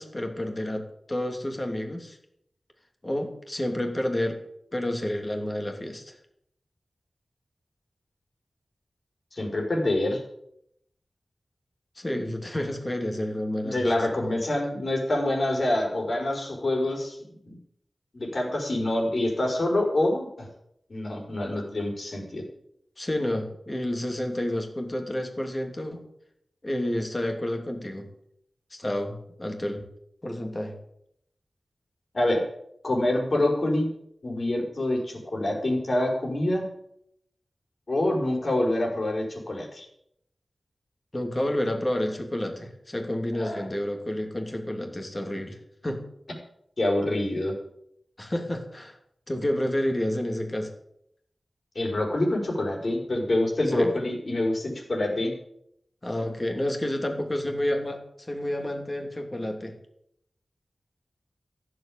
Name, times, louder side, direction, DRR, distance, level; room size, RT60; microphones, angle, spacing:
voice 1, 0.0-2.2 3.0-4.4 4.7-6.2 12.0-13.9 23.0-26.0 26.6-28.1 28.7-29.9 30.2-30.8 41.1-46.1 48.2-49.0 49.3-50.7 53.7-53.9 56.0-59.8, left 1 dB, 25° left, 4 dB, 2.8 m, -30 dB
voice 2, 9.3-10.2 13.6-17.2 17.4-17.6 18.1-20.5 20.9-22.4 32.1-32.4 32.8-33.9 34.2-36.7 37.9-39.9 43.4-43.7 46.8-47.5 51.8-55.3, left 1 dB, 55° left, 0 dB, 5.2 m, -26 dB
15.0 x 8.0 x 8.8 m, 0.74 s
wide cardioid pair, 95°, 0 cm